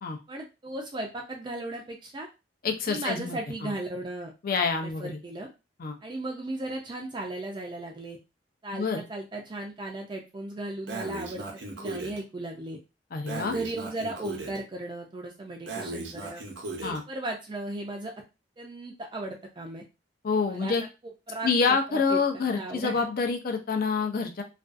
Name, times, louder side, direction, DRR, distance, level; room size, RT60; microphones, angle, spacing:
voice 1, 0.3-2.3 2.9-4.3 4.6-5.5 6.0-8.2 8.6-12.8 13.3-16.4 16.8-18.1 18.6-19.8 20.5-20.7 21.3-23.0, right 2 dB, 25° right, 1 dB, 0.4 m, -36 dB
voice 2, 2.6-3.7 4.4-5.2 5.8-6.0 8.7-9.0 13.1-13.5 16.8-17.0 20.2-20.8 21.4-24.4, left 5 dB, 55° left, 5 dB, 0.5 m, -27 dB
Breathing, 10.9-12.2 13.3-14.6 15.7-17.0, right 2 dB, 90° right, 0.7 m, -37 dB
2.4 x 2.3 x 2.4 m, 0.28 s
head